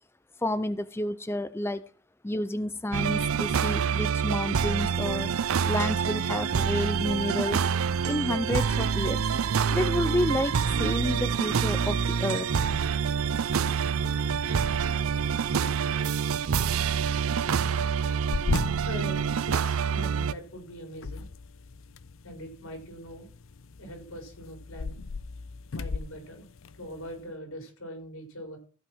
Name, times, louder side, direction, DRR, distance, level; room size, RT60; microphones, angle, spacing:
voice 1, 0.4-1.8 2.2-5.3 5.7-7.7 8.1-9.3 9.7-12.5, left 1 dB, 10° left, 13 dB, 0.5 m, -30 dB
sound 1, 2.9-20.3, right 6 dB, 85° right, 0.5 m, -27 dB
sound 2, 7.0-16.6, equal, 55° right, 1.7 m, -46 dB
sound 3, 12.5-27.3, left 4 dB, 70° left, 0.6 m, -40 dB
voice 2, 18.8-21.3 22.2-23.3 23.8-25.0 25.7-26.5 26.7-28.6, equal, 90° left, 3 dB, 5.0 m, -42 dB
15.0 x 5.7 x 6.1 m, 0.38 s
head